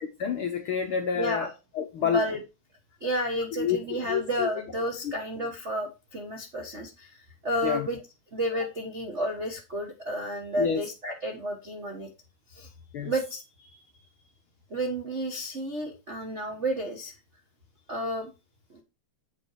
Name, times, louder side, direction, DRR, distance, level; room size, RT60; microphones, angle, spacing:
voice 1, 0.0-2.3 3.5-3.8 4.1-4.5 5.0-5.1 7.6-7.9 10.6-10.9 12.9-13.1, left 7 dB, 70° left, 1.3 m, -28 dB
voice 2, 1.1-1.5 2.0-2.4 3.0-8.0 8.3-12.1 12.5-12.7 13.0-13.8 14.7-17.1 17.9-18.3 18.7-18.8, equal, 65° right, 0.6 m, -31 dB
7.8 x 5.3 x 4.7 m
omnidirectional pair, 3.4 m